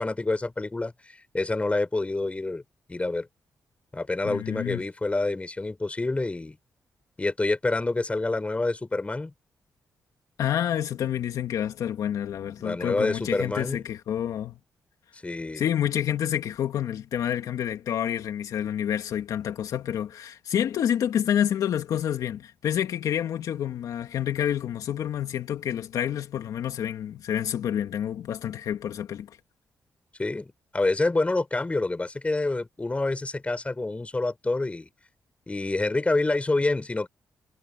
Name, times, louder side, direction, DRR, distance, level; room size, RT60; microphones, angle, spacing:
voice 1, 0.0-2.6 2.9-3.3 3.9-6.6 7.2-9.3 12.6-13.9 15.2-15.6 30.2-34.9 35.5-37.1, left 2 dB, 20° left, 4.5 m, -27 dB
voice 2, 4.2-4.8 10.4-14.6 15.6-29.3, left 10 dB, 80° left, 2.6 m, -28 dB
cardioid pair, 80°, 6 cm